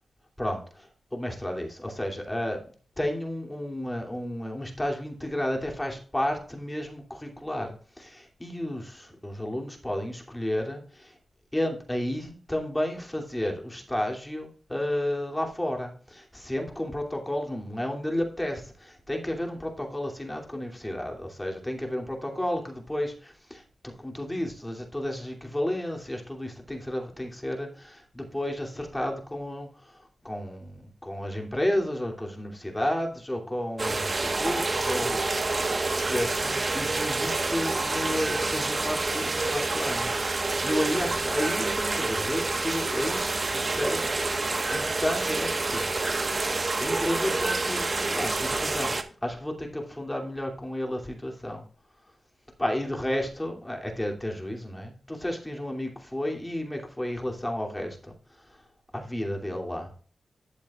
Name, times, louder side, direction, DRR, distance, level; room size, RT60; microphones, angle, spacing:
voice 1, 0.4-2.7 3.0-11.1 11.5-35.2 35.6-45.9 46.4-51.6 52.6-58.6 58.9-59.9, left 1 dB, 10° left, 1 dB, 2.8 m, -32 dB
sound 1, 33.8-49.0, right 3 dB, 40° right, 1.2 m, -28 dB
12.0 x 7.7 x 2.4 m, 0.43 s
cardioid pair, 70°, 0 cm